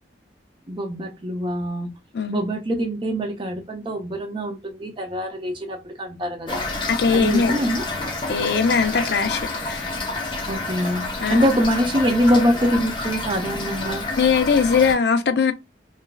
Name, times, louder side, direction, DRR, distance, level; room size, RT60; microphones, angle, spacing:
voice 1, 0.7-1.9 2.3-6.7 7.1-7.8 10.5-14.1, equal, 25° right, 0.5 m, -24 dB
Toilet flush / Fill (with liquid), 6.5-14.9, left 2 dB, 25° left, 0.6 m, -29 dB
voice 2, 6.9-7.5 8.3-9.9 11.2-11.5 14.2-15.5, left 5 dB, 60° left, 0.4 m, -20 dB
3.0 x 2.4 x 2.2 m
head